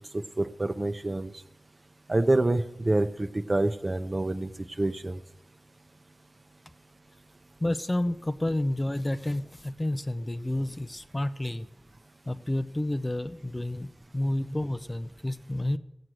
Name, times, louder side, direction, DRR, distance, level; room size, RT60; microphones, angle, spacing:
voice 1, 0.1-1.3 2.1-4.5 4.8-5.2, right 2 dB, 35° right, 10 dB, 0.8 m, -27 dB
voice 2, 7.6-11.7 12.3-15.8, left 1 dB, 25° left, 11 dB, 0.6 m, -30 dB
16.5 x 6.4 x 7.7 m, 0.85 s
cardioid pair, 50°, 0 cm